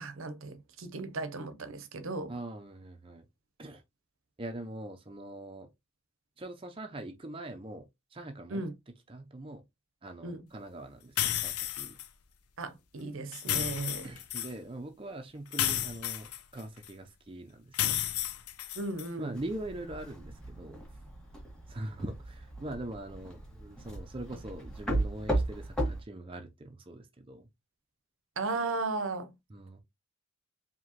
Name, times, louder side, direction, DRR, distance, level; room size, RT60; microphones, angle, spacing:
voice 1, 0.0-2.3 8.5-8.7 10.2-10.4 12.6-14.1 18.8-19.3 28.4-29.3, right 3 dB, 60° right, 0.7 m, -36 dB
voice 2, 2.3-3.3 3.6-3.8 4.4-5.7 6.4-8.7 9.1-9.6 10.0-12.0 13.5-13.7 14.0-18.0 19.2-20.8 21.7-27.5 29.5-29.8, right 1 dB, 25° right, 0.5 m, -42 dB
sound 1, 11.2-12.1 13.3-14.5 15.5-16.9 17.7-19.1, left 11 dB, 90° left, 0.6 m, -32 dB
sound 2, 19.3-26.0, right 1 dB, 5° left, 1.5 m, -36 dB
4.7 x 3.0 x 2.9 m
head